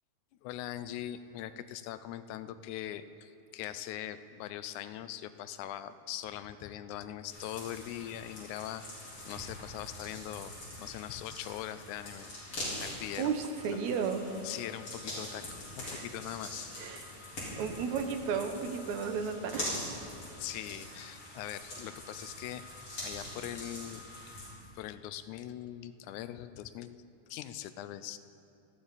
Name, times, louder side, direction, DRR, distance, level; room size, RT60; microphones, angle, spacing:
voice 1, 0.4-8.8 9.3-12.3 12.8-13.3 13.7-13.8 14.4-16.7 20.4-22.6 23.0-24.0 24.8-27.0 27.3-28.2, left 12 dB, 85° left, 12 dB, 2.0 m, -41 dB
sound 1, 7.3-24.5, left 1 dB, 45° left, 4.6 m, -43 dB
voice 2, 13.2-14.3 15.8-16.1 16.8-17.1 17.6-19.9, right 6 dB, 75° right, 7 dB, 2.1 m, -34 dB
18.5 x 14.0 x 4.1 m, 2.6 s
omnidirectional pair, 3.4 m